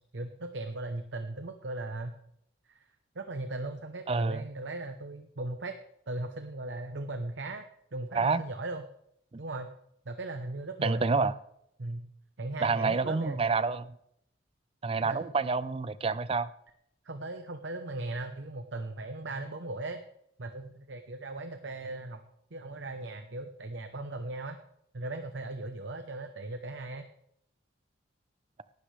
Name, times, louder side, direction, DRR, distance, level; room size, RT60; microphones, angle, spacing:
voice 1, 0.1-2.1 2.7-2.8 3.1-5.7 6.1-8.8 9.4-9.7 10.0-11.3 11.8-12.1 12.4-13.4 15.0-15.2 17.0-20.0 20.4-22.2 22.5-24.6 24.9-27.1, right 2 dB, 65° right, 0.9 m, -38 dB
voice 2, 4.1-4.4 8.1-8.4 10.8-11.3 12.6-13.9 14.8-16.5, right 4 dB, 30° right, 0.4 m, -28 dB
18.0 x 12.0 x 3.3 m
head